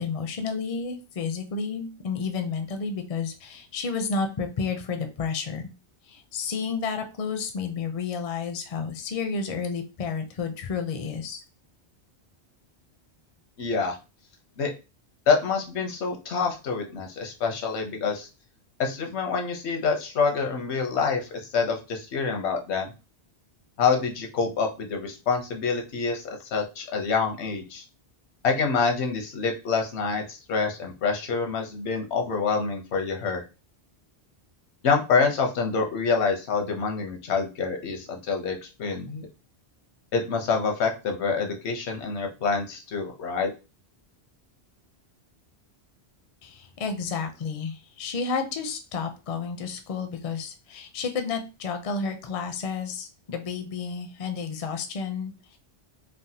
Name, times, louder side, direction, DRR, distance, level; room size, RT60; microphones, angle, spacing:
voice 1, 0.0-5.7 6.1-11.4 46.4-55.6, left 5 dB, 45° left, 6 dB, 0.5 m, -31 dB
voice 2, 13.6-14.0 14.6-14.7 15.3-18.3 18.8-22.9 23.8-27.8 28.4-33.4 34.8-39.3 40.1-43.5, left 5 dB, 85° left, 3 dB, 1.0 m, -26 dB
3.3 x 2.1 x 2.7 m, 0.30 s
omnidirectional pair, 1.1 m